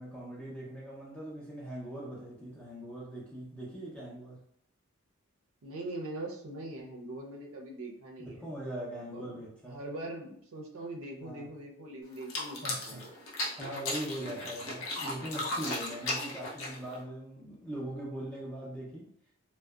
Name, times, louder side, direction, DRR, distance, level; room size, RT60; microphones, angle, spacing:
voice 1, 0.0-4.4 8.2-9.8 11.2-11.5 12.6-13.1 13.6-19.3, right 1 dB, 5° left, -6 dB, 0.5 m, -41 dB
voice 2, 5.6-8.4 9.0-9.3 9.6-13.1, right 2 dB, 75° right, 0 dB, 0.5 m, -42 dB
sound 1, 12.2-17.0, left 2 dB, 65° left, 0.6 m, -36 dB
2.6 x 2.1 x 2.3 m, 0.67 s
head